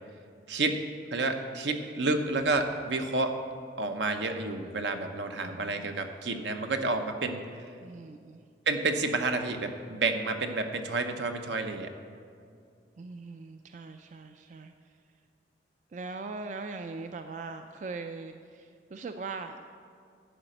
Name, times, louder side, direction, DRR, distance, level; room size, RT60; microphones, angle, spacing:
voice 1, 1.1-3.4 3.8-7.4 8.7-11.9, right 3 dB, 75° right, 6 dB, 0.8 m, -30 dB
voice 2, 5.4-5.9 7.8-8.4 13.0-14.7 15.9-19.6, right 3 dB, 40° right, 7 dB, 0.3 m, -41 dB
11.0 x 5.0 x 7.7 m, 2.3 s
head